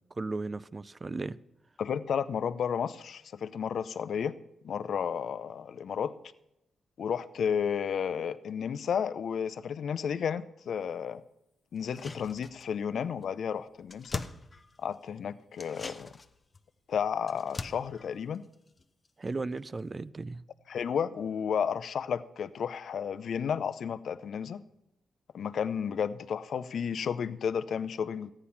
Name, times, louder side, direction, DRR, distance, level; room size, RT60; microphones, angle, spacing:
voice 1, 0.2-1.4 19.2-20.4, right 3 dB, 35° right, 0.4 m, -35 dB
voice 2, 1.8-4.3 4.6-6.1 7.0-11.2 11.7-14.2 14.8-16.1 16.9-18.5 20.7-24.6 25.3-28.3, left 7 dB, 70° left, 0.5 m, -32 dB
sound 1, 11.8-12.9 13.2-13.3 13.6-15.1 15.5-19.3 19.6-19.7, left 3 dB, 30° left, 0.7 m, -43 dB
14.0 x 9.9 x 5.7 m
cardioid pair, 70°, 0 cm